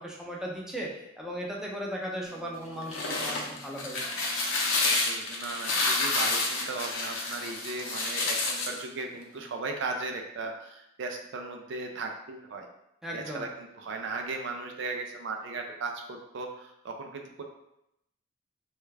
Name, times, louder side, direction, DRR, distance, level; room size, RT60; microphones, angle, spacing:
voice 1, 0.0-4.0 13.0-13.5, equal, 5° right, -3 dB, 0.5 m, -37 dB
sound 1, 2.7-8.8, left 3 dB, 75° left, 0.6 m, -29 dB
voice 2, 4.8-12.7 13.1-17.4, right 3 dB, 65° right, 3 dB, 0.4 m, -37 dB
3.3 x 2.3 x 3.2 m, 0.83 s
head